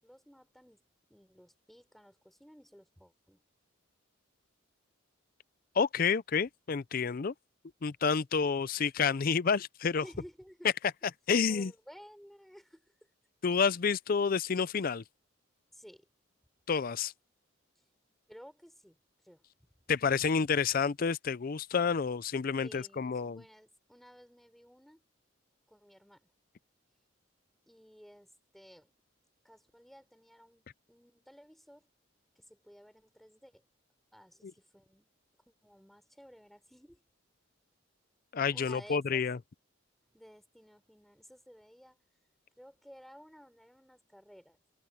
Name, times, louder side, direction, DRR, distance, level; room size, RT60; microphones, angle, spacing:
voice 1, 0.0-3.4 10.0-10.7 11.5-13.1 15.7-16.1 18.3-19.0 19.2-19.4 22.6-25.0 25.7-26.3 27.7-28.9 29.4-31.9 32.3-33.6 34.1-35.1 35.5-37.0 38.5-39.2 40.1-42.0 42.6-44.6, equal, ahead, 4.7 m, -55 dB
voice 2, 5.8-7.3 7.8-10.0 11.3-11.7 13.4-15.0 16.7-17.1 19.9-23.4 34.4-34.5 38.3-39.4, left 5 dB, 45° left, 0.5 m, -29 dB
head